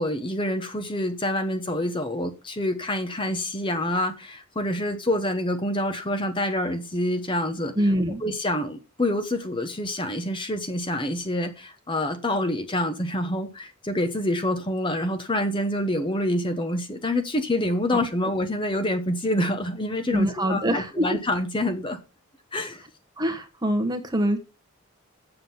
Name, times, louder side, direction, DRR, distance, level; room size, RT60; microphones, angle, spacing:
voice 1, 0.0-7.7 8.2-22.0 22.5-22.8, left 1 dB, 20° left, 0.9 m, -27 dB
voice 2, 7.8-8.2 17.9-18.0 20.1-21.2 23.2-24.4, equal, 20° right, 1.2 m, -24 dB
7.8 x 7.5 x 5.6 m
head